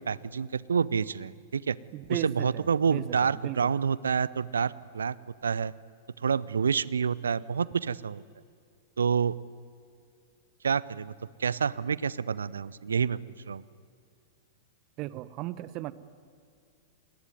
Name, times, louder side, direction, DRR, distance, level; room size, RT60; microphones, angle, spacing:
voice 1, 0.0-1.8 2.1-5.1 5.4-5.7 6.2-8.2 9.0-9.4 10.6-11.1 11.4-13.2 13.5-13.6, right 6 dB, 70° right, 21 dB, 0.7 m, -28 dB
voice 2, 1.9-2.5 2.9-3.0 3.4-3.7 15.0-15.9, right 16 dB, 40° right, 17 dB, 1.0 m, -35 dB
28.5 x 21.0 x 9.4 m, 2.4 s
figure-of-eight pair, 95°, 0 cm